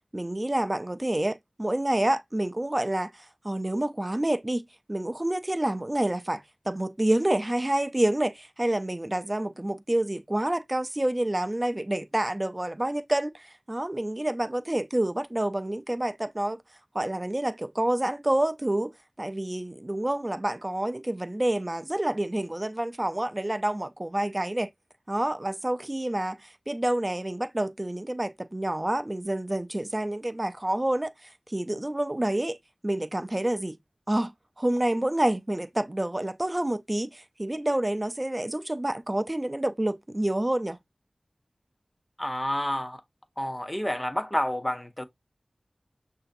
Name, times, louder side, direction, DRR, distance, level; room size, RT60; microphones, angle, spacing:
voice 1, 0.1-4.6 4.9-16.6 16.9-24.7 25.1-32.6 32.8-33.8 34.1-40.8, right 1 dB, 30° right, 0.5 m, -28 dB
voice 2, 42.2-43.0 43.4-45.0, left 1 dB, 15° left, 0.8 m, -29 dB
6.2 x 2.7 x 2.5 m
wide cardioid pair, 45°, 0 cm